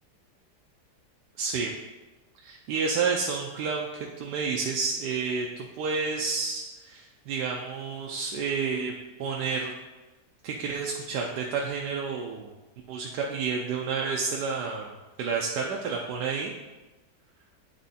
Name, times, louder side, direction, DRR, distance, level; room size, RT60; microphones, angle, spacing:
voice 1, 1.4-1.7 2.4-3.9 4.2-8.9 9.2-9.7 10.4-12.5 12.9-16.5, right 5 dB, 80° right, -1 dB, 1.2 m, -30 dB
9.5 x 3.7 x 4.1 m, 1.1 s
omnidirectional pair, 1.8 m